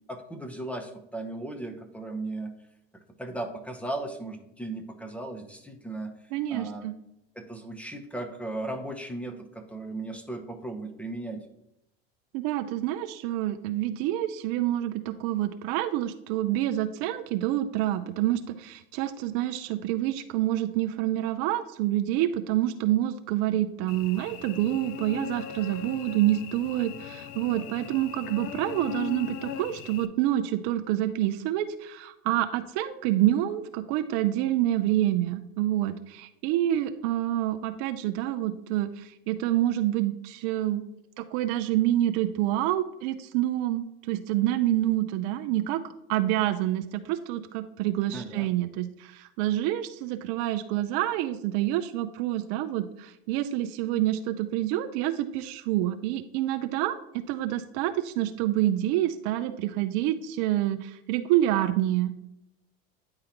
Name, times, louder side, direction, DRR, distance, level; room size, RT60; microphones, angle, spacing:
voice 1, 0.1-2.5 3.2-6.1 6.5-6.9 7.4-11.4 48.1-48.5, right 2 dB, 5° left, 6 dB, 0.7 m, -36 dB
voice 2, 6.3-6.9 12.3-40.8 41.2-45.8 46.1-57.0 57.3-62.1, right 13 dB, 55° right, 10 dB, 0.5 m, -27 dB
Cricket / Buzz, 23.9-30.1, left 10 dB, 50° left, 0.5 m, -39 dB
9.7 x 3.9 x 2.9 m, 0.84 s
hypercardioid pair, 100°, 31 cm